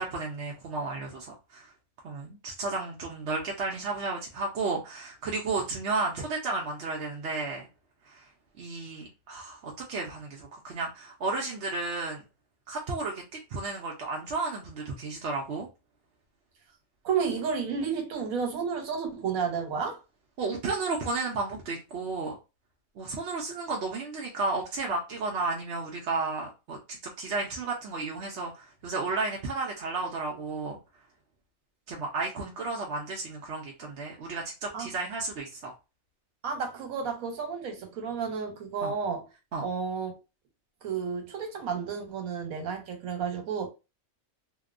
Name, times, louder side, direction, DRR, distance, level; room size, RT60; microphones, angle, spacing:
voice 1, 0.0-1.7 2.0-7.7 8.1-8.2 8.6-12.2 12.7-13.2 13.5-15.7 20.4-22.4 23.0-30.8 31.9-35.7 38.8-38.9 39.5-39.6, right 3 dB, 60° right, 0.8 m, -33 dB
voice 2, 17.0-20.0 34.7-34.9 36.4-39.2 39.6-40.1 40.8-43.7, right 6 dB, 80° right, 1.2 m, -31 dB
2.9 x 2.1 x 2.4 m
omnidirectional pair, 1.4 m